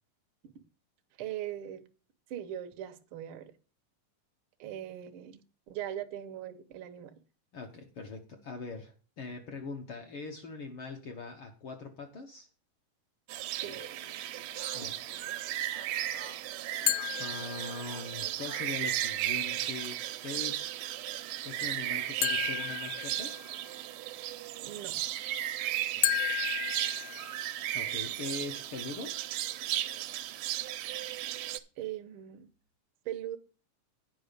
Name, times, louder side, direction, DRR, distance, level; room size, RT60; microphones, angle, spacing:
voice 1, 1.2-1.8 2.3-3.5 4.6-5.4 5.7-7.2 13.6-13.8 24.6-25.0 31.8-32.5 33.0-33.4, right 11 dB, 70° right, 1.3 m, -40 dB
voice 2, 7.5-12.5 14.7-14.9 17.2-20.7 21.4-23.4 26.0-26.2 27.7-29.2, left 3 dB, 60° left, 1.4 m, -42 dB
sound 1, 13.3-31.6, right 13 dB, 90° right, 2.3 m, -35 dB
Speech, 13.4-18.8, left 2 dB, 45° left, 0.9 m, -53 dB
sound 2, 16.9-18.2 22.2-23.7 26.0-27.7, left 14 dB, 85° left, 1.4 m, -33 dB
9.2 x 5.4 x 6.7 m
omnidirectional pair, 3.6 m